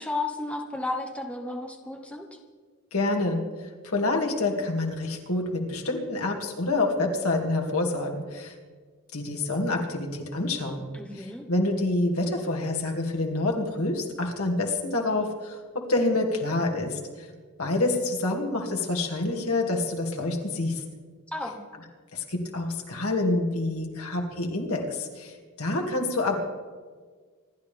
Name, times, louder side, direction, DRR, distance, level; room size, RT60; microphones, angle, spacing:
voice 1, 0.0-2.3 10.9-11.4 21.3-21.6, left 2 dB, 5° left, 2 dB, 1.2 m, -33 dB
voice 2, 2.9-8.5 9.1-10.9 11.1-15.6 15.9-17.3 17.6-20.8 22.1-26.4, left 2 dB, 70° left, 2 dB, 2.5 m, -27 dB
27.0 x 12.5 x 3.5 m, 1.5 s
head